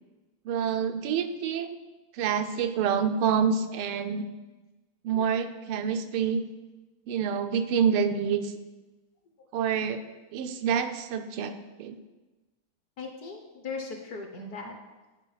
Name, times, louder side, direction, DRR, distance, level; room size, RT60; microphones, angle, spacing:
voice 1, 0.5-1.7 2.2-4.3 5.0-6.4 7.1-8.5 9.5-10.0 10.3-11.5 11.8-12.0, right 7 dB, 90° right, 8 dB, 1.6 m, -27 dB
voice 2, 13.0-14.7, left 4 dB, 55° left, 3 dB, 1.1 m, -39 dB
10.0 x 4.6 x 5.7 m, 1.2 s
omnidirectional pair, 2.4 m